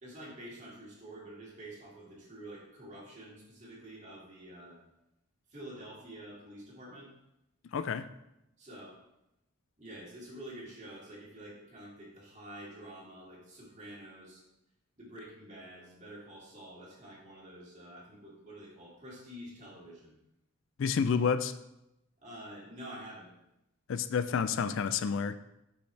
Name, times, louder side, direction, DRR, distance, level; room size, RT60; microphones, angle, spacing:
voice 1, 0.0-4.8 5.5-7.1 8.6-8.9 9.8-14.4 15.0-20.2 22.2-23.3, right 1 dB, 35° right, -5 dB, 2.4 m, -48 dB
voice 2, 7.7-8.1 20.8-21.5 23.9-25.4, left 6 dB, 60° left, 12 dB, 0.3 m, -29 dB
8.6 x 5.5 x 3.4 m, 0.87 s
head